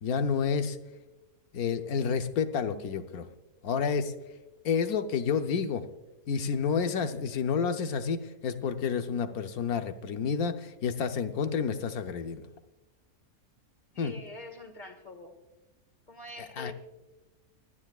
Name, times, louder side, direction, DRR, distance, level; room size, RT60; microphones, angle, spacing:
voice 1, 0.0-0.8 1.5-3.3 3.6-4.1 4.6-5.8 6.3-12.5 14.0-14.1 16.6-16.7, left 6 dB, 80° left, 8 dB, 1.3 m, -29 dB
voice 2, 13.9-15.3 16.1-16.7, left 2 dB, 30° left, 5 dB, 2.0 m, -45 dB
30.0 x 10.0 x 2.4 m, 1.1 s
omnidirectional pair, 1.5 m